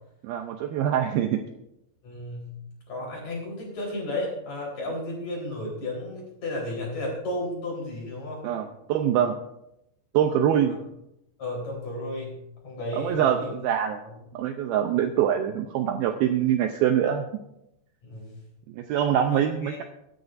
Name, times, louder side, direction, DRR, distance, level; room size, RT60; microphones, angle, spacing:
voice 1, 0.2-1.4 8.4-9.4 10.1-10.8 12.9-14.0 14.3-17.3 18.7-19.8, right 9 dB, 90° right, 5 dB, 2.1 m, -24 dB
voice 2, 2.0-2.6 2.9-8.4 10.6-10.8 11.4-13.5 14.0-14.2 18.0-18.4 19.2-19.8, left 1 dB, 40° left, -3 dB, 5.2 m, -33 dB
23.5 x 10.5 x 2.6 m, 0.84 s
omnidirectional pair, 5.2 m